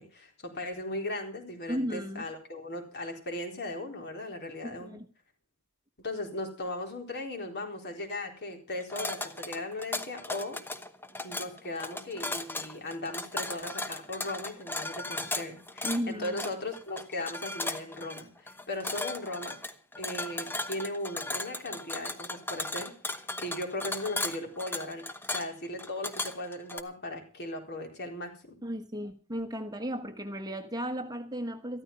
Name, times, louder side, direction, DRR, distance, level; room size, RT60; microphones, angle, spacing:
voice 1, 0.0-4.9 6.0-10.6 11.2-19.6 20.0-25.0 25.3-28.6, left 1 dB, 50° left, 3 dB, 4.1 m, -37 dB
voice 2, 1.7-2.2 4.6-5.0 15.8-16.3 28.6-31.8, equal, 15° right, 7 dB, 1.2 m, -35 dB
sound 1, 8.8-26.8, left 2 dB, 10° left, 1.0 m, -36 dB
14.0 x 13.5 x 5.4 m, 0.36 s
head